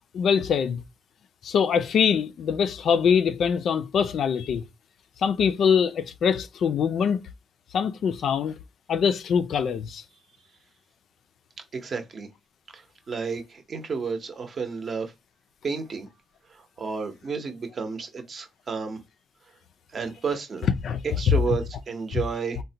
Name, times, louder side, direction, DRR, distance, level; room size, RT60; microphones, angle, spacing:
voice 1, 0.1-0.8 1.4-4.6 5.2-7.2 7.7-8.6 8.9-10.0 20.8-21.0 21.3-21.6 22.1-22.2, left 7 dB, 55° left, 0.3 m, -23 dB
voice 2, 11.7-12.3 12.7-12.8 13.1-15.1 15.6-16.1 16.8-19.0 19.9-20.7 21.2-22.6, right 5 dB, 35° right, 0.6 m, -31 dB
3.8 x 2.1 x 2.7 m
cardioid pair, 140°, 0 cm